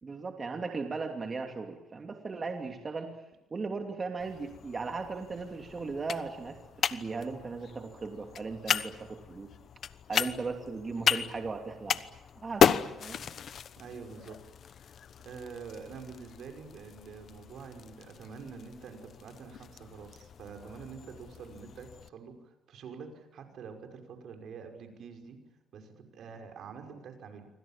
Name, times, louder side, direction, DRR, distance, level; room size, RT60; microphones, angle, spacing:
voice 1, 0.0-3.2 3.5-9.5 10.1-12.0 12.4-13.3, right 4 dB, 35° right, 4 dB, 2.8 m, -37 dB
sound 1, 4.2-22.1, left 8 dB, 60° left, 1.0 m, -35 dB
voice 2, 13.7-14.4 15.2-25.4 25.7-27.5, right 5 dB, 70° right, 5 dB, 5.6 m, -46 dB
27.5 x 25.0 x 7.5 m, 0.98 s
cardioid pair, 90°, 0 cm